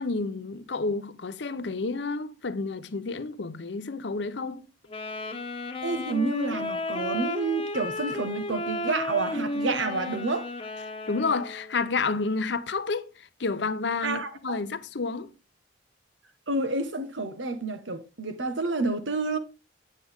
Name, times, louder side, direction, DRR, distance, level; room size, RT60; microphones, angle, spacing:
voice 1, 0.0-4.7 11.1-15.3, left 4 dB, 65° left, 0.7 m, -30 dB
Wind instrument woodwind instrument, 4.9-11.8, left 1 dB, 30° left, 1.0 m, -33 dB
voice 2, 5.8-10.5 14.0-14.6 16.5-19.4, right 3 dB, 85° right, 1.3 m, -29 dB
8.5 x 7.7 x 3.6 m
head